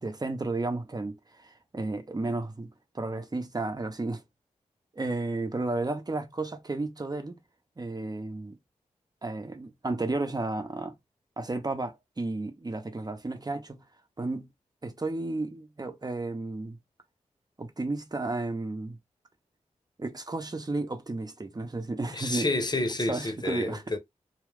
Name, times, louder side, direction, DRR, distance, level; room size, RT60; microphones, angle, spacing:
voice 1, 0.0-2.7 2.9-4.2 4.9-7.4 7.8-8.6 9.2-10.9 11.4-13.8 14.2-14.5 14.8-16.8 17.6-19.0 20.0-22.5 23.0-23.8, right 2 dB, 30° right, 0.7 m, -33 dB
voice 2, 22.1-24.0, left 2 dB, 30° left, 0.9 m, -29 dB
2.4 x 2.3 x 3.3 m
cardioid pair, 45°, 14 cm